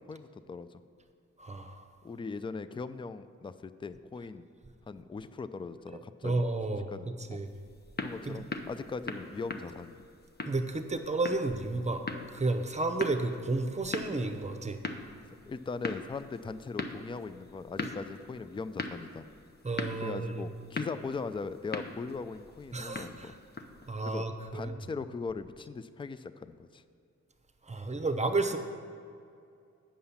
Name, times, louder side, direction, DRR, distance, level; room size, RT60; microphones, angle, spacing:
voice 1, 0.1-0.8 2.0-4.5 4.9-6.4 6.9-7.4 8.0-10.0 15.3-19.2 20.0-23.3 24.0-24.3 24.5-26.8, left 4 dB, 20° left, 13 dB, 0.3 m, -39 dB
voice 2, 1.4-1.8 5.9-7.5 8.2-8.4 10.4-14.8 19.6-20.5 22.7-23.3 23.9-24.8 27.6-28.6, right 3 dB, 25° right, 7 dB, 0.8 m, -32 dB
sound 1, 7.4-23.9, left 3 dB, 35° left, 0.8 m, -41 dB
8.7 x 5.6 x 7.0 m, 2.4 s
cardioid pair, 70°, 29 cm